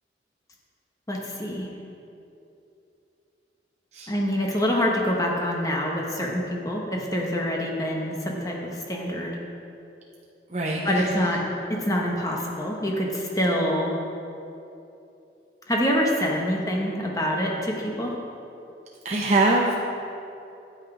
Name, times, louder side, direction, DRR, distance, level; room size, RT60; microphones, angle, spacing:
voice 1, 1.1-1.7 4.1-9.4 10.8-11.4 11.7-13.9 15.7-18.1, equal, 20° left, -1 dB, 0.9 m, -26 dB
voice 2, 10.5-11.1 19.0-19.7, right 2 dB, 40° right, -2 dB, 0.7 m, -23 dB
9.2 x 8.1 x 4.9 m, 2.7 s
head